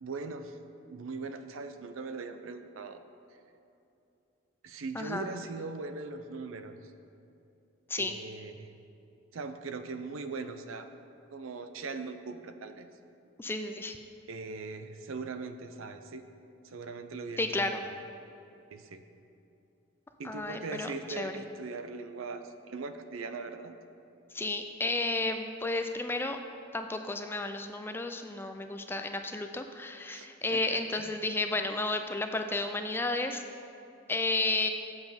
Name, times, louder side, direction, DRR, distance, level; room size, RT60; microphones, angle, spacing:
voice 1, 0.0-0.6 0.9-3.0 4.6-6.8 8.0-8.7 9.3-10.9 11.3-12.9 14.3-16.2 16.6-17.5 17.8-18.0 18.7-19.0 20.2-23.7 30.1-31.2, right 4 dB, 80° right, 9 dB, 0.5 m, -40 dB
voice 2, 4.9-5.3 7.9-8.2 13.4-14.0 17.4-17.9 20.2-21.4 24.3-26.4 26.7-33.4 34.1-34.7, left 2 dB, 10° left, 6 dB, 0.3 m, -32 dB
8.0 x 7.1 x 5.2 m, 2.7 s
head